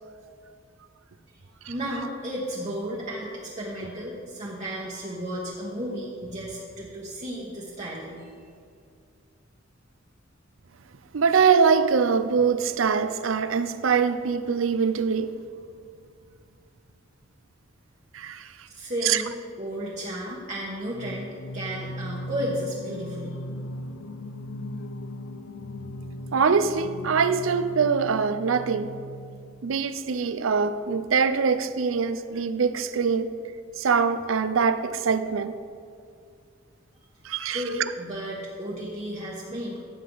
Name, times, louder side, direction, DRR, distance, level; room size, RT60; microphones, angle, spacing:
voice 1, 1.7-8.3 18.7-23.4 37.5-39.8, equal, 35° right, 1.3 m, -33 dB
voice 2, 11.1-15.4 18.1-18.5 19.0-19.2 26.3-28.9 29.6-33.3 33.8-35.6 37.2-37.6, right 5 dB, 75° right, 0.5 m, -23 dB
Singing, 20.9-29.8, left 1 dB, 65° left, 0.4 m, -38 dB
15.0 x 7.6 x 3.9 m
head